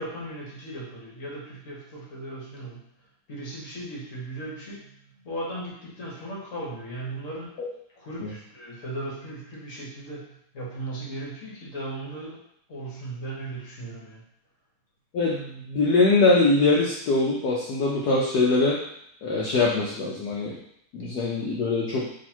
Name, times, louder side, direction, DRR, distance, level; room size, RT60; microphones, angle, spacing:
voice 1, 0.0-2.8 3.3-4.9 5.2-7.6 8.0-14.2, right 1 dB, 45° left, -4 dB, 1.2 m, -37 dB
voice 2, 15.1-18.8 19.2-20.5 20.9-22.1, left 3 dB, 65° left, -4 dB, 1.0 m, -22 dB
3.8 x 3.1 x 4.4 m, 0.70 s
omnidirectional pair, 2.2 m